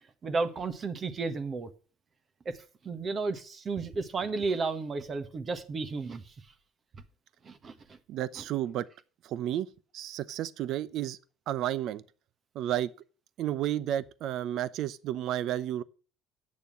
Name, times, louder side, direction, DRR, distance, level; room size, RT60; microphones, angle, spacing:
voice 1, 0.2-1.7 2.4-2.6 2.8-6.3 7.4-7.7 8.4-8.5, right 4 dB, 40° right, 1.5 m, -33 dB
voice 2, 8.1-8.9 9.2-11.2 11.5-12.0 12.5-12.9 13.4-15.8, right 12 dB, 60° right, 0.7 m, -32 dB
8.7 x 6.9 x 7.5 m
hypercardioid pair, 70°, 0 cm